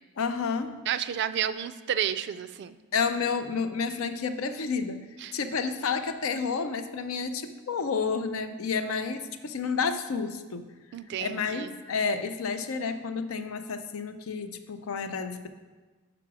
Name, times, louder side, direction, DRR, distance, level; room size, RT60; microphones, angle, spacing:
voice 1, 0.2-0.8 2.9-5.0 5.3-10.6 11.2-15.5, left 5 dB, 85° left, 9 dB, 0.5 m, -30 dB
voice 2, 0.9-2.8 5.2-5.3 10.9-11.7, right 9 dB, 55° right, 13 dB, 0.3 m, -31 dB
5.9 x 4.9 x 6.1 m, 1.3 s
head